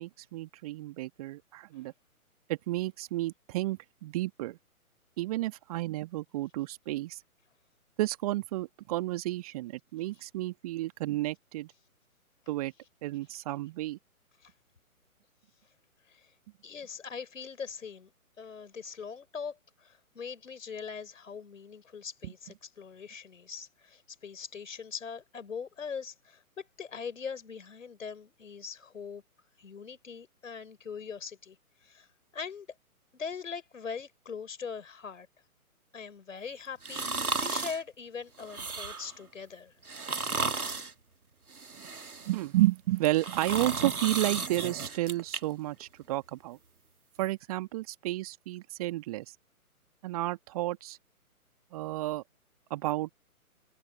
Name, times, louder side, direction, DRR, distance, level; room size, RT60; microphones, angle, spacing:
voice 1, 0.0-1.9 2.5-4.6 5.2-7.2 8.0-11.7 12.5-12.7 13.0-14.0 22.2-22.3 42.3-46.6 47.2-49.3 50.0-51.0 51.7-52.2 52.7-53.1, right 17 dB, 25° right, 1.7 m, -31 dB
voice 2, 16.6-18.1 18.4-29.2 29.6-31.6 31.8-32.1 32.3-32.7 33.1-35.3 35.9-37.1 37.4-39.7, left 6 dB, 60° left, 5.3 m, -41 dB
sound 1, 36.8-37.8 38.4-39.2 39.9-40.9 41.5-42.4 43.0-45.4 45.8-45.9, right 4 dB, 75° right, 1.8 m, -34 dB
figure-of-eight pair, 130°, 44 cm